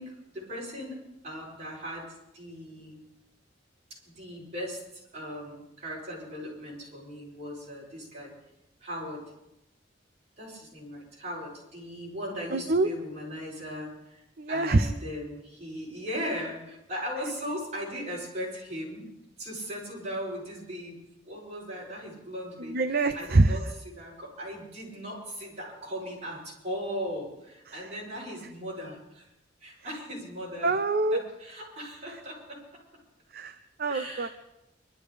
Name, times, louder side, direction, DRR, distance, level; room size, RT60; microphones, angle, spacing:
voice 1, 0.0-3.0 3.9-4.8 5.1-8.3 8.8-9.2 10.4-19.1 19.4-23.6 23.9-29.3 29.6-30.7 31.1-32.6 33.9-34.3, equal, 40° right, -5 dB, 7.7 m, -38 dB
voice 2, 12.5-12.9 14.4-14.9 22.7-23.6 27.7-27.9 30.6-31.2 33.3-34.3, right 2 dB, 55° right, 8 dB, 0.7 m, -25 dB
24.5 x 13.0 x 3.5 m, 0.89 s
head